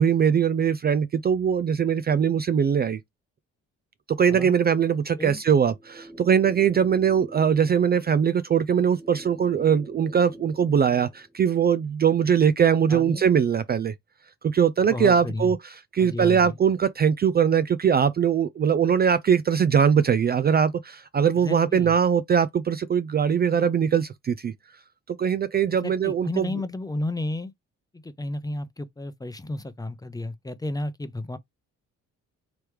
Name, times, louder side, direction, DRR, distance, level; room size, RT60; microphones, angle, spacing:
voice 1, 0.0-3.0 4.1-13.9 14.4-15.6 15.9-24.5 25.1-26.5, right 7 dB, 35° right, 0.4 m, -21 dB
sound 1, 5.4-11.5, right 1 dB, 10° right, 1.5 m, -46 dB
voice 2, 12.9-13.2 14.9-15.5 16.0-16.6 21.4-21.9 25.7-27.5 27.9-31.4, left 2 dB, 10° left, 0.7 m, -32 dB
3.4 x 3.1 x 4.6 m
cardioid pair, 90°, 30 cm